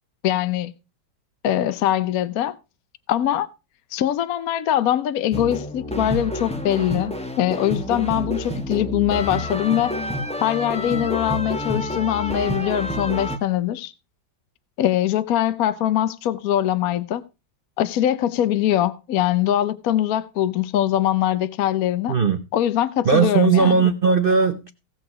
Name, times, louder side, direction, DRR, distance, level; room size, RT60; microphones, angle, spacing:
voice 1, 0.2-0.7 1.4-2.5 3.1-3.5 3.9-10.0 10.4-13.9 14.8-17.2 17.8-22.2 22.5-23.9, left 11 dB, 60° left, 1.0 m, -22 dB
sound 1, 5.3-13.4, equal, 5° left, 1.0 m, -28 dB
voice 2, 22.1-22.4 23.0-24.7, right 5 dB, 85° right, 0.4 m, -18 dB
17.0 x 6.4 x 4.8 m
omnidirectional pair, 2.0 m